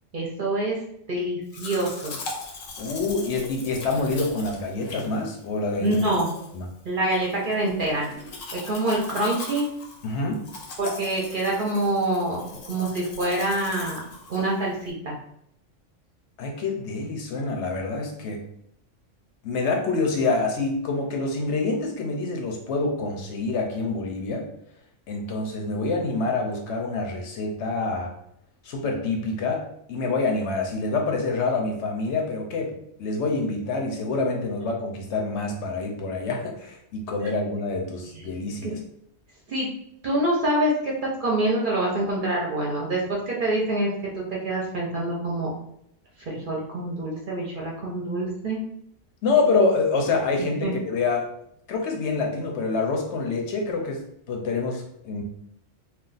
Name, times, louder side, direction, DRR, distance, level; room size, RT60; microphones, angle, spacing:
voice 1, 0.1-0.8 1.1-2.2 5.8-6.3 6.8-8.1 8.5-9.7 10.8-12.4 12.7-14.0 14.3-15.2 38.2-38.3 38.6-38.7 39.5-39.7 40.0-43.9 44.1-45.5 46.2-48.6 50.6-50.7, right 1 dB, 50° right, -3 dB, 0.7 m, -26 dB
Domestic sounds home sounds, 1.5-14.9, left 3 dB, 90° left, 1.1 m, -40 dB
voice 2, 2.8-6.0 6.5-6.7 10.0-10.4 16.4-18.4 19.4-24.5 25.1-28.1 28.6-38.8 49.2-51.3 51.7-54.0 54.3-55.2, left 3 dB, 70° left, 1 dB, 0.9 m, -26 dB
2.4 x 2.3 x 3.9 m, 0.72 s
omnidirectional pair, 1.3 m